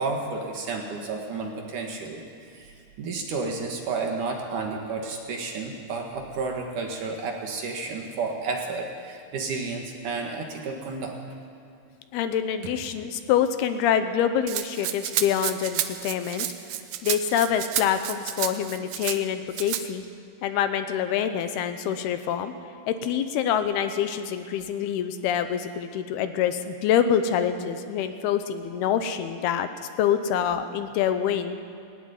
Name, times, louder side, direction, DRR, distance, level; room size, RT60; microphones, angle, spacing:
voice 1, 0.0-2.2 2.5-11.2, right 4 dB, 55° right, 1 dB, 2.9 m, -31 dB
voice 2, 12.1-16.5 17.0-20.0 20.4-22.5 22.9-29.7 30.0-31.6, left 9 dB, 80° left, 9 dB, 2.8 m, -26 dB
Rattle (instrument), 14.5-19.2 19.5-19.8, right 12 dB, 80° right, 1.9 m, -30 dB
19.0 x 14.0 x 9.8 m, 2.5 s
omnidirectional pair, 4.7 m